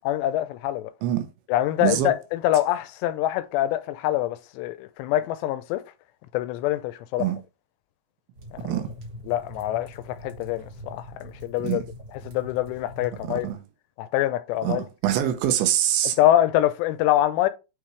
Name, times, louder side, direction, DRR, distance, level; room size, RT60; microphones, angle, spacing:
voice 1, 0.1-0.9 1.5-5.8 6.3-7.3 8.5-8.7 9.3-11.8 12.2-13.5 14.0-14.8 16.2-17.5, left 13 dB, 80° left, 2.5 m, -25 dB
voice 2, 1.8-2.1 7.2-7.4 8.6-8.9 11.6-11.8 13.2-13.6 14.6-16.2, right 11 dB, 80° right, 3.2 m, -24 dB
sound 1, 8.3-13.5, equal, 45° right, 2.6 m, -42 dB
9.6 x 3.6 x 3.2 m
omnidirectional pair, 5.4 m